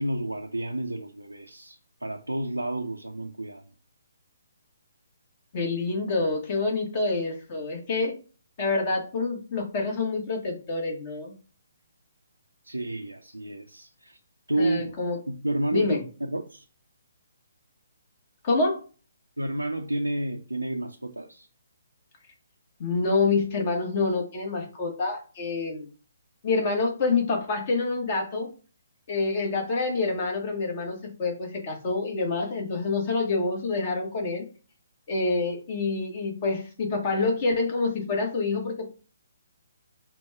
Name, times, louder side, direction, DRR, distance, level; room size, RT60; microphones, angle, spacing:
voice 1, 0.0-3.6 12.6-14.2 14.5-15.0 15.3-16.6 19.4-21.5, right 1 dB, 90° right, 0.5 m, -30 dB
voice 2, 5.5-8.1 8.6-11.3 14.6-15.2 15.7-16.0 18.4-18.8 22.8-25.9 26.4-28.5 29.1-34.5 35.1-38.9, left 3 dB, 35° left, 1.4 m, -27 dB
5.6 x 2.3 x 3.5 m
figure-of-eight pair, 135°, 0 cm